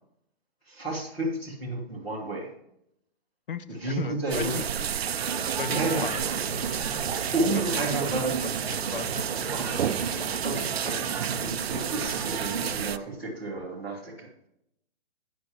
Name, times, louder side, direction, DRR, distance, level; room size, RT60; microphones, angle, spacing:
voice 1, 0.7-2.5 3.7-4.6 5.7-6.1 7.3-8.3 9.5-11.0 11.4-14.5, right 2 dB, 5° left, -5 dB, 0.7 m, -31 dB
voice 2, 3.5-4.9 5.6-6.2 7.5-7.8 8.1-9.3, left 6 dB, 55° left, 13 dB, 0.8 m, -36 dB
sound 1, 4.3-13.0, right 9 dB, 70° right, 0.6 m, -31 dB
sound 2, 5.2-12.7, right 5 dB, 35° right, 1.0 m, -35 dB
11.5 x 9.3 x 3.0 m, 0.77 s
hypercardioid pair, 175°, 32 cm